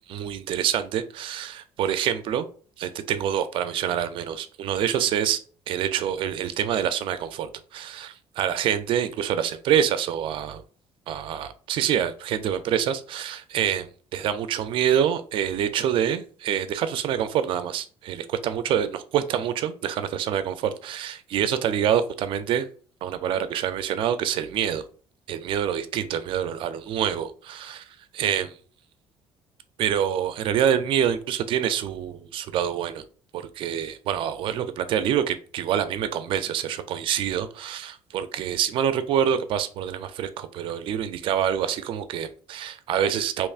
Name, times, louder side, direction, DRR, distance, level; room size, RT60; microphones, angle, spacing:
voice 1, 0.1-2.5 2.8-5.4 5.7-10.6 11.1-22.7 23.0-24.9 25.3-28.6 29.8-33.0 33.3-43.5, right 9 dB, 60° right, 10 dB, 0.4 m, -26 dB
4.4 x 3.0 x 2.4 m, 0.42 s
cardioid pair, 145°, 10 cm